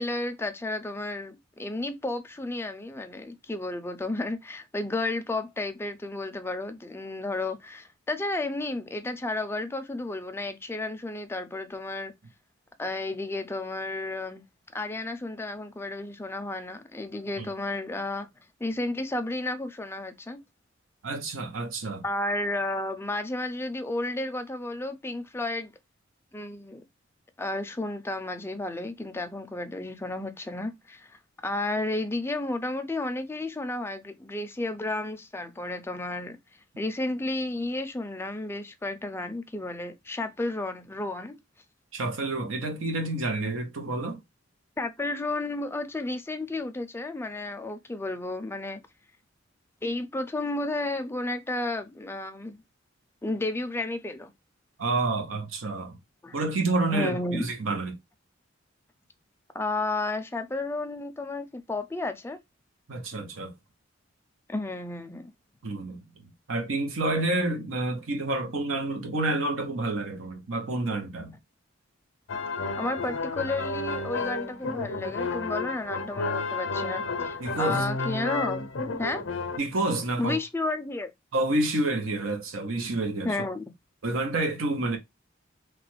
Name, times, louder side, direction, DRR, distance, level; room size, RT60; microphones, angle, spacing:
voice 1, 0.0-12.1 12.8-14.4 14.7-18.3 18.6-20.4 22.0-25.7 26.3-26.8 27.4-31.2 31.4-36.4 36.8-41.4 44.8-48.8 49.8-52.6 53.2-54.3 56.2-56.4 56.9-57.4 59.5-62.4 64.5-65.3 72.8-78.7 79.0-79.2 80.2-81.1 83.2-83.6, left 2 dB, 10° left, 0.4 m, -32 dB
voice 2, 21.0-22.0 41.9-44.2 54.8-56.0 56.3-58.0 62.9-63.5 65.6-66.0 66.5-71.4 77.4-77.9 79.6-80.4 81.3-83.4 84.0-85.0, right 2 dB, 90° right, 0.8 m, -29 dB
sound 1, 72.3-79.6, left 3 dB, 70° left, 0.5 m, -31 dB
3.1 x 2.2 x 3.0 m
head